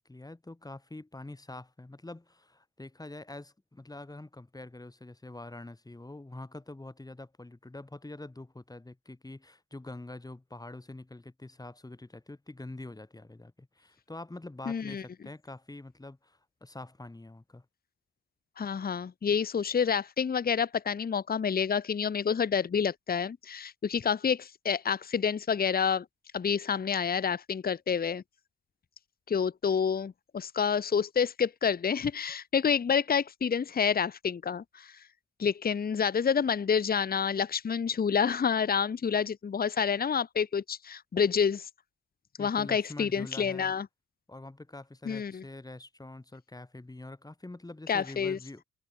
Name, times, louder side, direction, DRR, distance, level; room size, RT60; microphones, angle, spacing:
voice 1, 0.0-17.7 42.4-43.7 44.3-48.6, left 2 dB, 10° left, 3.7 m, -45 dB
voice 2, 14.7-15.0 18.6-26.0 26.3-28.2 29.3-34.9 35.4-41.7 42.4-43.9 45.0-45.4 47.9-48.4, left 6 dB, 30° left, 1.0 m, -28 dB
cardioid pair, 90°, 30 cm